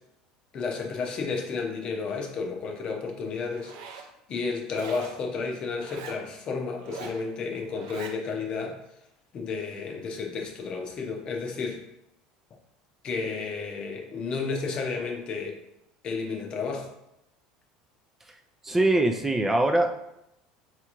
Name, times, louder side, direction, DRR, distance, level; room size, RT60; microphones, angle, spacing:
voice 1, 0.5-8.8 9.3-11.8 13.0-15.6 16.0-16.9, left 4 dB, 40° left, 2 dB, 0.7 m, -32 dB
Zipper (clothing), 3.5-4.1 4.7-5.2 5.8-6.2 6.8-7.2 7.7-8.2, right 5 dB, 80° right, 0.5 m, -42 dB
voice 2, 18.6-19.9, right 2 dB, 10° right, 4 dB, 0.4 m, -22 dB
4.4 x 2.5 x 3.0 m, 0.83 s
supercardioid pair, 120°, 2 cm